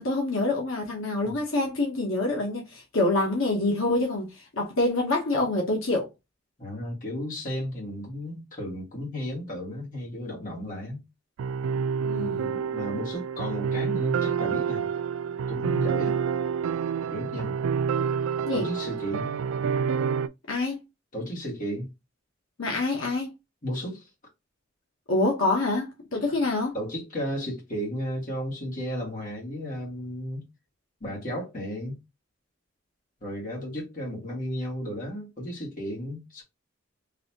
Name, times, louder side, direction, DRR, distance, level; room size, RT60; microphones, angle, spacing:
voice 1, 0.0-4.3 4.6-6.1 12.0-12.6 18.5-18.7 20.5-20.8 22.6-23.3 25.1-26.7, left 2 dB, 80° left, 1.0 m, -26 dB
voice 2, 6.6-11.0 12.2-14.8 15.5-16.2 17.1-17.5 18.5-19.3 21.1-21.9 23.6-24.1 26.3-26.4 26.7-30.4 31.0-32.0 33.2-36.4, equal, 40° left, 1.7 m, -34 dB
sound 1, 11.4-20.3, right 6 dB, 80° right, 0.3 m, -28 dB
4.0 x 2.7 x 2.8 m
head